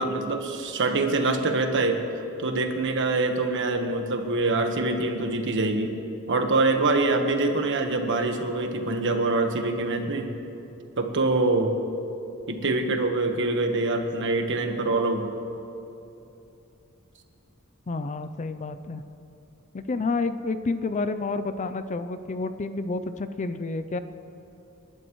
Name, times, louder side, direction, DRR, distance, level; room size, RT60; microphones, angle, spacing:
voice 1, 0.0-2.0 2.4-5.9 6.3-10.3 11.0-11.7 12.5-15.3, right 2 dB, 60° right, 4 dB, 1.3 m, -25 dB
voice 2, 17.9-19.0 19.7-24.0, left 3 dB, 35° left, 11 dB, 0.4 m, -29 dB
27.5 x 12.0 x 3.1 m, 2.9 s
head